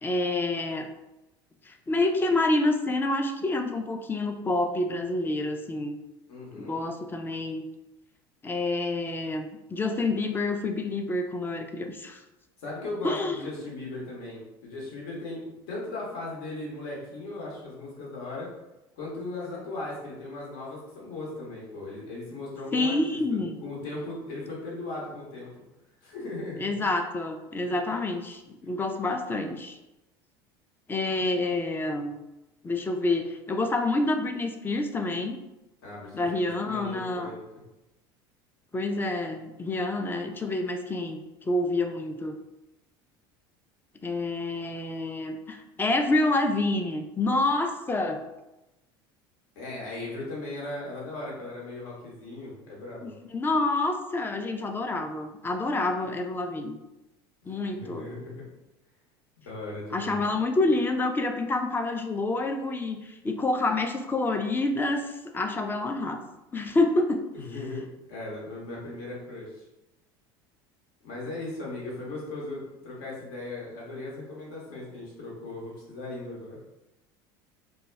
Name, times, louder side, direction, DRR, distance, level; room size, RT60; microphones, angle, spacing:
voice 1, 0.0-0.9 1.7-6.0 6.5-7.7 8.4-12.2 13.0-13.3 22.7-23.6 26.6-29.8 30.9-32.2 32.6-35.4 36.1-37.3 38.7-42.4 44.0-48.2 53.0-56.8 57.5-58.1 59.9-66.2 66.5-67.2, left 2 dB, 15° left, 6 dB, 0.3 m, -28 dB
voice 2, 6.3-6.7 12.6-18.5 19.0-25.5 26.0-26.7 35.8-37.4 49.6-53.2 57.7-58.5 59.4-60.2 67.3-69.6 71.0-76.6, left 2 dB, 75° left, -4 dB, 1.0 m, -38 dB
2.2 x 2.1 x 3.3 m, 0.97 s
hypercardioid pair, 85°, 12 cm